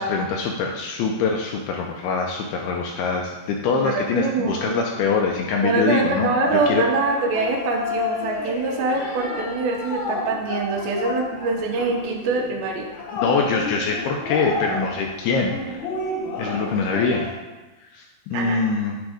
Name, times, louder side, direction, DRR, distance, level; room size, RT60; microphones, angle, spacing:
voice 1, 0.0-6.8 13.1-15.8 16.4-17.3 17.9-19.0, left 4 dB, 80° left, 1 dB, 2.3 m, -24 dB
voice 2, 3.8-4.9 5.6-12.9 18.3-18.6, right 3 dB, 85° right, 1 dB, 3.2 m, -24 dB
sound 1, 6.4-17.3, left 3 dB, 65° left, 1.8 m, -31 dB
10.0 x 3.6 x 4.9 m, 1.1 s
omnidirectional pair, 5.0 m